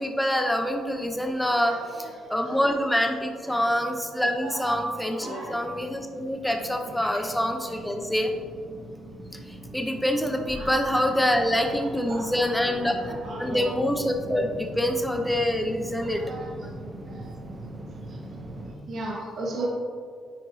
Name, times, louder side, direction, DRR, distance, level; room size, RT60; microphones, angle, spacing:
voice 1, 0.0-8.3 9.7-16.2 16.6-16.7, equal, 5° left, 4 dB, 0.7 m, -26 dB
voice 2, 2.2-2.6 3.5-3.7 4.4-4.6 5.0-5.8 7.1-7.2 7.7-7.8 10.6-10.7 11.3-11.4 11.8-13.7 16.0-16.5 17.0-17.3 18.1-18.2 18.9-19.7, right 2 dB, 65° right, -4 dB, 1.5 m, -37 dB
sound 1, 4.8-18.8, right 1 dB, 40° right, 0.7 m, -42 dB
9.3 x 4.5 x 2.8 m, 2.1 s
cardioid pair, 90°, 0 cm